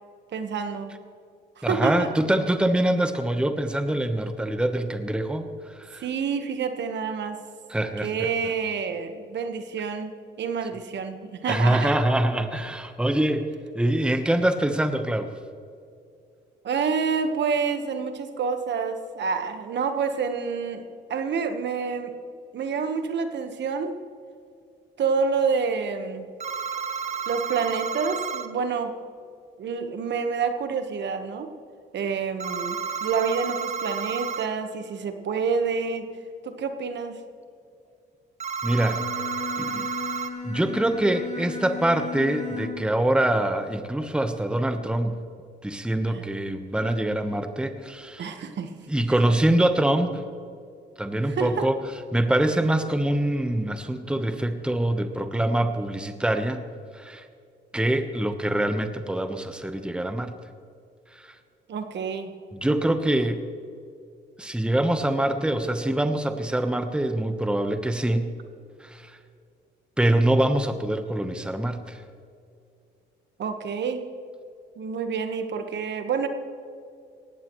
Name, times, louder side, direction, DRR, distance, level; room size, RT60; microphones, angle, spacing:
voice 1, 0.3-0.9 1.6-2.1 6.0-7.4 8.0-12.0 16.6-20.8 21.1-22.1 22.5-24.0 25.0-26.3 27.3-28.9 29.6-31.5 31.9-36.1 36.4-37.2 46.1-46.2 48.2-48.7 51.2-51.7 61.7-62.3 73.4-74.0 74.8-76.3, right 5 dB, 60° right, 7 dB, 1.3 m, -28 dB
voice 2, 1.6-6.0 7.7-8.3 11.5-13.5 13.7-15.3 38.6-39.1 39.6-39.9 40.4-45.2 45.6-48.3 48.9-50.2 51.0-51.8 52.1-56.6 56.9-57.2 57.7-60.3 61.2-61.3 62.5-63.4 64.4-68.3 68.8-69.1 70.0-72.0, right 1 dB, 5° right, 7 dB, 1.0 m, -24 dB
sound 1, 26.4-28.5 32.4-34.5 38.4-40.3, right 7 dB, 35° right, 1.0 m, -31 dB
Bowed string instrument, 38.8-43.0, left 4 dB, 35° left, 2.8 m, -35 dB
18.0 x 15.5 x 3.1 m, 2.3 s
cardioid pair, 90°, 20 cm